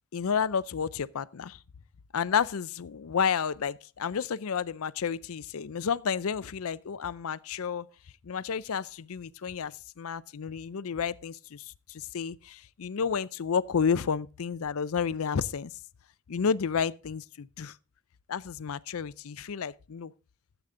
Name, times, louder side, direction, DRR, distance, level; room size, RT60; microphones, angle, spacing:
voice 1, 0.1-1.6 2.1-7.9 8.2-15.7 16.3-17.8 18.3-20.1, left 6 dB, 65° left, 0.5 m, -31 dB
13.0 x 8.1 x 3.7 m
head